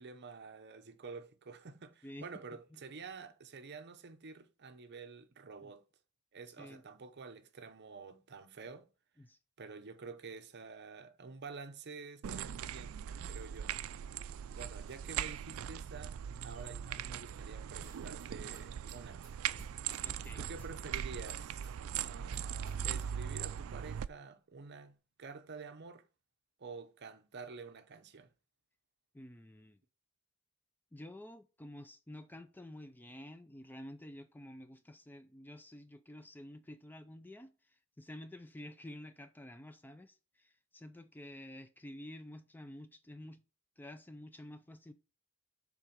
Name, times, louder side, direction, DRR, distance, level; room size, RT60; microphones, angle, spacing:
voice 1, 0.0-5.8 6.3-8.9 9.6-13.0 13.2-13.8 14.6-16.2 16.4-19.3 20.4-21.8 22.0-26.0 26.6-28.3, right 4 dB, 50° right, 0.8 m, -49 dB
sound 1, 12.2-24.1, right 9 dB, 65° right, 0.3 m, -40 dB
sound 2, 17.8-23.3, right 2 dB, 15° right, 2.1 m, -56 dB
voice 2, 20.0-20.4 29.1-29.8 30.9-43.4 43.8-44.9, left 1 dB, 10° left, 0.4 m, -50 dB
7.2 x 3.9 x 5.1 m
head